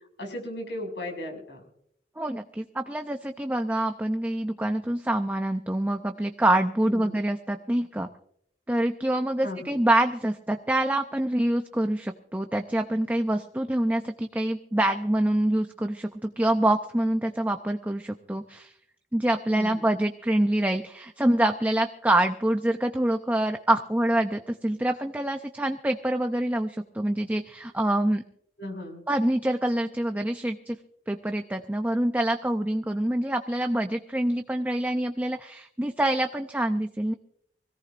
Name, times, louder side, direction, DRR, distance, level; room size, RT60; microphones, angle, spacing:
voice 1, 0.2-1.6 6.9-7.2 9.4-9.8 19.5-19.9 28.6-29.0, left 1 dB, 75° left, 2 dB, 6.0 m, -36 dB
voice 2, 2.2-8.1 8.7-18.7 19.1-28.2 29.1-30.8 31.1-37.1, right 1 dB, 10° right, 5 dB, 0.5 m, -26 dB
24.5 x 17.5 x 2.5 m, 0.70 s
head